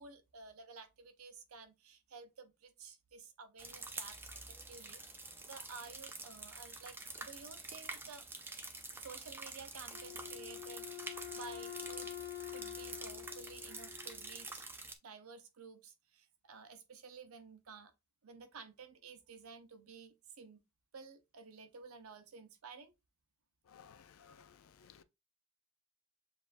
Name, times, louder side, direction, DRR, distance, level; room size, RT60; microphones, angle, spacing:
voice 1, 0.0-4.2 4.5-8.2 9.0-12.1 12.5-14.7 15.0-17.9 18.2-20.6 20.9-22.9, right 5 dB, 80° right, 0.7 m, -53 dB
sound 1, 3.6-15.0, right 3 dB, 10° right, 0.4 m, -47 dB
Wind instrument woodwind instrument, 9.9-14.4, left 14 dB, 50° left, 1.2 m, -47 dB
voice 2, 23.7-25.0, left 7 dB, 75° left, 0.4 m, -59 dB
7.2 x 2.5 x 2.5 m
head